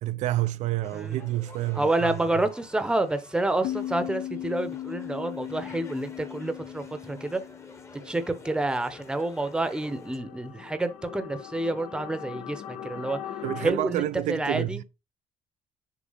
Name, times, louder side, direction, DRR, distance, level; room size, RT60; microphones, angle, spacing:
voice 1, 0.0-2.2 13.4-14.8, right 15 dB, 70° right, 0.4 m, -29 dB
sound 1, 0.8-10.2, left 3 dB, 20° left, 1.0 m, -49 dB
voice 2, 0.9-1.3 1.7-7.4 8.0-13.2 13.6-14.8, right 2 dB, 5° right, 0.8 m, -28 dB
sound 2, 3.6-9.0, left 13 dB, 65° left, 0.4 m, -38 dB
sound 3, 8.0-13.7, left 9 dB, 85° left, 1.1 m, -42 dB
6.5 x 2.8 x 5.6 m
cardioid pair, 155°, 13 cm